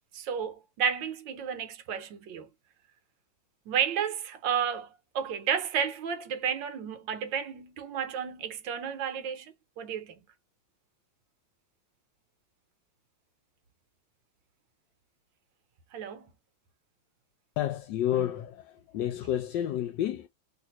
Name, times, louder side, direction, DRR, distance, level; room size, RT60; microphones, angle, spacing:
voice 1, 0.1-2.5 3.7-4.9 5.1-10.2 15.9-16.3, right 7 dB, 75° right, 1.4 m, -32 dB
voice 2, 17.6-20.3, left 11 dB, 75° left, 1.2 m, -30 dB
3.2 x 2.5 x 2.8 m
omnidirectional pair, 2.1 m